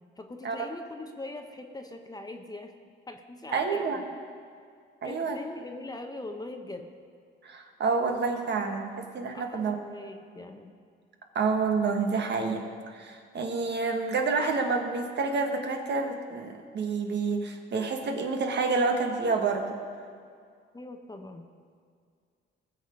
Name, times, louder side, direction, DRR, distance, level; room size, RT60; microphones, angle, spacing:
voice 1, 0.2-2.7 3.1-4.0 5.0-6.9 9.3-10.7 20.7-21.5, left 2 dB, 20° left, 5 dB, 1.0 m, -41 dB
voice 2, 3.5-4.0 5.0-5.4 7.4-9.8 11.3-12.6 12.9-19.8, right 4 dB, 60° right, 3 dB, 1.5 m, -28 dB
19.0 x 7.0 x 5.2 m, 2.2 s
cardioid pair, 100°, 21 cm